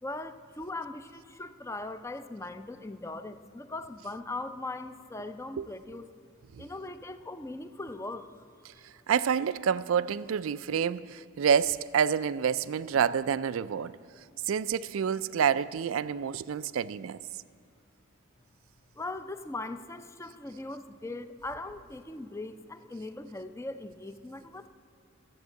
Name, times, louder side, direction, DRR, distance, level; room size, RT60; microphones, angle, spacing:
voice 1, 0.0-6.1 6.6-8.3 19.0-24.7, left 2 dB, 15° left, 0.5 m, -40 dB
voice 2, 8.7-14.0 14.4-17.2, right 7 dB, 70° right, 0.4 m, -28 dB
14.5 x 8.0 x 8.2 m
head